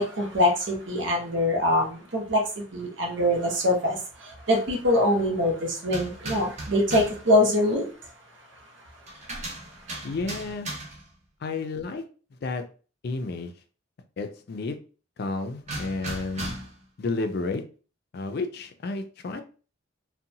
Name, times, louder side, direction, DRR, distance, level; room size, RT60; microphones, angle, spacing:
voice 1, 0.0-2.4 2.7-4.0 4.5-7.8, left 1 dB, 70° right, 1 dB, 0.8 m, -23 dB
sound 1, 5.9-7.3 9.1-11.1 15.7-16.8, right 2 dB, 35° right, 0.8 m, -36 dB
voice 2, 10.0-10.7 11.4-12.0 12.4-12.6 13.0-13.5 14.2-14.7 15.2-16.5 17.0-17.6 18.1-19.4, left 3 dB, 55° left, 7 dB, 0.4 m, -31 dB
2.7 x 2.2 x 2.6 m, 0.37 s
head